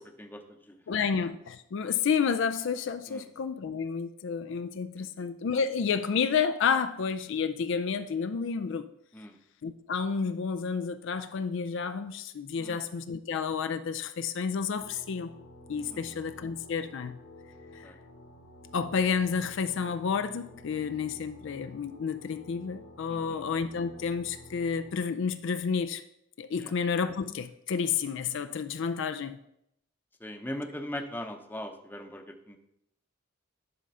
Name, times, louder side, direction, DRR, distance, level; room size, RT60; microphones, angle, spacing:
voice 1, 0.0-1.0 3.1-3.2 5.0-5.3 9.1-9.4 12.6-12.8 15.9-16.2 17.8-18.0 23.1-23.4 26.6-26.7 30.2-32.6, left 1 dB, 10° left, 5 dB, 0.7 m, -41 dB
voice 2, 0.9-8.9 9.6-15.3 15.7-17.2 17.7-17.9 18.7-26.0 26.4-29.4, left 6 dB, 60° left, 10 dB, 0.4 m, -30 dB
sound 1, 14.8-24.9, left 1 dB, 85° left, 1.8 m, -51 dB
10.5 x 3.7 x 5.4 m, 0.78 s
head